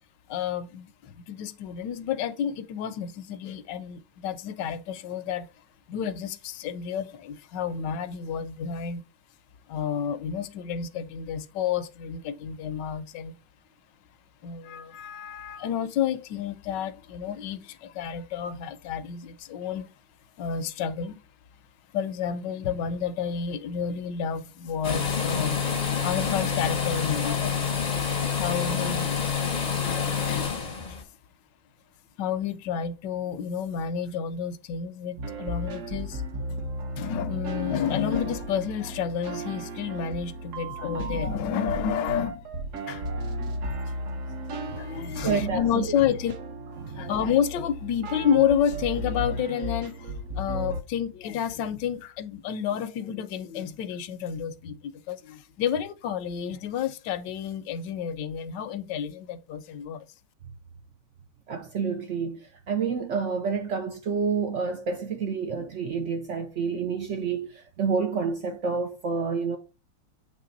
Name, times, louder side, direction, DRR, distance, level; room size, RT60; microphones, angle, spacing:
voice 1, 0.3-5.5 5.9-9.0 9.7-13.3 14.4-19.9 20.4-21.2 21.9-27.7 28.4-29.2 29.8-30.0 30.3-30.6 32.2-36.2 37.0-42.4 42.9-43.0 43.5-43.7 44.1-44.2 44.5-46.3 47.0-49.9 50.4-60.0, left 8 dB, 75° left, 1.2 m, -30 dB
sound 1, 24.8-31.0, left 6 dB, 40° left, 0.6 m, -27 dB
sound 2, 35.2-50.8, right 1 dB, 55° right, 1.0 m, -34 dB
voice 2, 45.2-45.9 46.8-47.1 61.5-69.6, right 5 dB, 80° right, 0.6 m, -29 dB
7.6 x 3.2 x 3.9 m
omnidirectional pair, 2.0 m